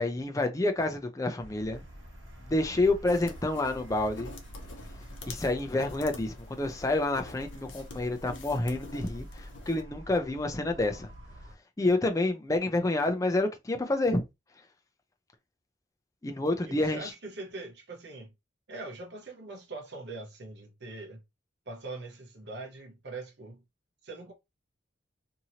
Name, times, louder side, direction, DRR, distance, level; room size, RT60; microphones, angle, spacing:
voice 1, 0.0-1.8 2.5-4.3 5.3-11.1 11.8-14.2 16.2-17.1, left 2 dB, 20° left, 0.5 m, -28 dB
sound 1, 1.4-11.5, equal, 90° right, 1.0 m, -47 dB
sound 2, 3.1-9.8, left 3 dB, 85° left, 0.7 m, -47 dB
voice 2, 16.6-18.3 18.7-21.2 21.7-23.6 24.0-24.3, right 3 dB, 60° right, 0.8 m, -42 dB
2.8 x 2.6 x 2.8 m
head